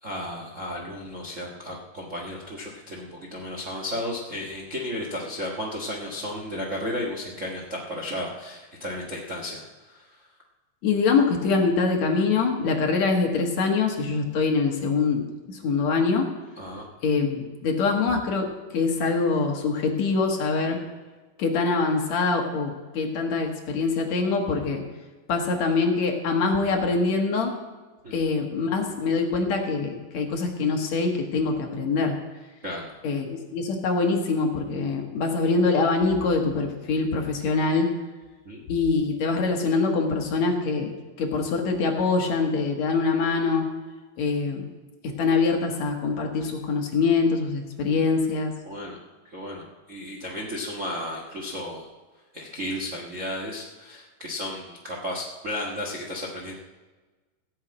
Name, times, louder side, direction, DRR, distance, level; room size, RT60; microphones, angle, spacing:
voice 1, 0.0-9.6 9.9-10.1 16.6-16.9 28.0-28.2 32.6-32.9 38.4-38.6 48.6-49.0 49.3-51.9 52.3-56.5, left 1 dB, 40° right, -1 dB, 1.1 m, -34 dB
voice 2, 10.8-15.2 15.5-16.3 17.0-18.5 18.7-20.8 21.4-24.8 25.3-27.5 28.1-32.1 33.0-37.9 38.7-43.7 44.2-44.6 45.2-48.5, left 4 dB, 60° left, 2 dB, 2.6 m, -24 dB
16.0 x 6.6 x 8.7 m, 1.3 s
omnidirectional pair, 3.7 m